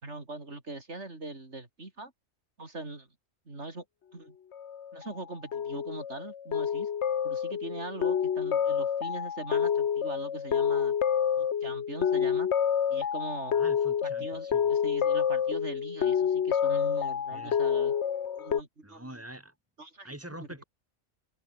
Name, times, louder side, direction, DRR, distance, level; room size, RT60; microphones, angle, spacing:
voice 1, 0.0-2.1 2.6-3.1 3.5-3.8 4.1-4.3 4.9-6.9 7.2-10.9 11.4-12.5 12.9-13.5 14.0-17.9 18.4-19.1 19.8-20.1, right 2 dB, 70° right, 4.2 m, -41 dB
sound 1, 4.5-5.1 5.5-18.6, left 8 dB, 70° left, 1.3 m, -28 dB
voice 2, 13.5-14.7 17.3-17.6 18.8-19.5 20.0-20.6, right 1 dB, 10° right, 4.6 m, -45 dB
open air
omnidirectional pair, 1.2 m